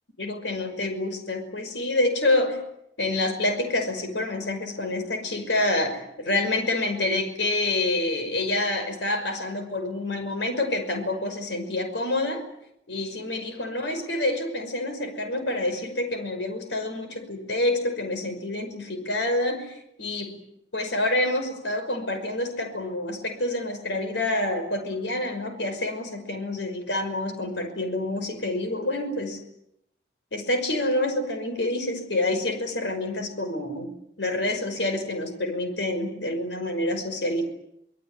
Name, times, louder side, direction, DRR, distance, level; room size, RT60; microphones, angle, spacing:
voice 1, 0.2-2.6 3.0-12.4 12.9-20.4 20.7-29.4 30.3-33.9 34.2-37.4, left 2 dB, 80° left, 7 dB, 5.7 m, -27 dB
26.0 x 21.5 x 9.9 m, 0.79 s
head